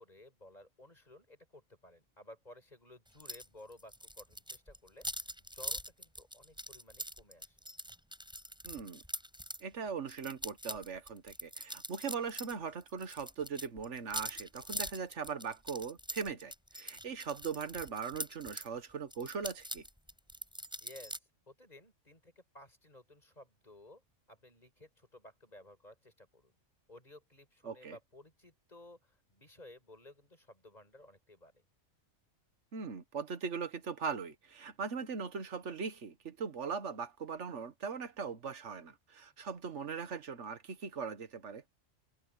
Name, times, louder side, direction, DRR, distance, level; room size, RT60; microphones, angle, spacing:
voice 1, 0.0-5.2 5.5-7.6 20.8-26.5 26.9-31.6, left 1 dB, 35° left, 6.2 m, -56 dB
sound 1, 3.2-3.5 3.7-9.6 10.1-12.6 12.8-18.7 19.1-21.2, equal, 5° right, 6.1 m, -43 dB
voice 2, 8.6-9.0 9.6-19.9 27.6-28.0 32.7-41.6, right 6 dB, 75° right, 1.6 m, -40 dB
omnidirectional pair, 1.2 m